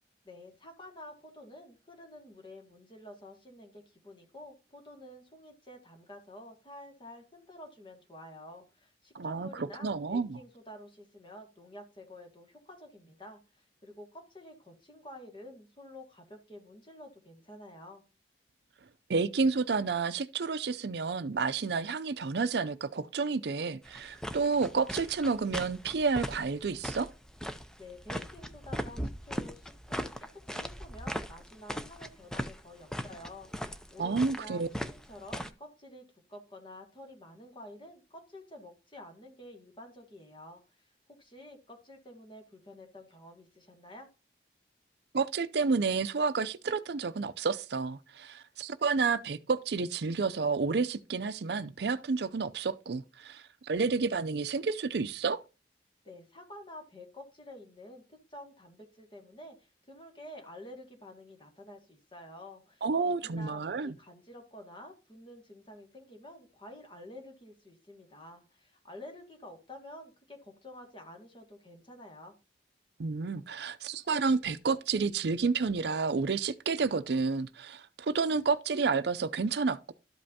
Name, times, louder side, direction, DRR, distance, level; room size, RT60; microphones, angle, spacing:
voice 1, 0.2-18.0 27.8-30.1 30.5-44.1 56.0-72.3, left 1 dB, 30° left, 2.0 m, -50 dB
voice 2, 9.1-10.4 19.1-27.1 34.0-34.7 45.1-55.4 62.8-63.9 73.0-79.9, right 4 dB, 65° right, 0.5 m, -30 dB
sound 1, 23.8-35.5, equal, 5° left, 0.5 m, -39 dB
13.0 x 5.3 x 2.8 m
head